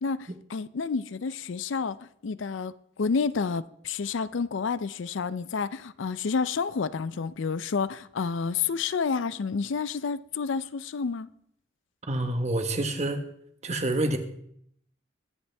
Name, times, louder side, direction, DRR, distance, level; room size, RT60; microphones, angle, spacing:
voice 1, 0.0-2.0 2.2-11.3, left 5 dB, 70° left, 0.5 m, -29 dB
voice 2, 12.1-13.2 13.6-14.2, right 1 dB, 35° right, 1.3 m, -27 dB
22.5 x 8.1 x 3.4 m
head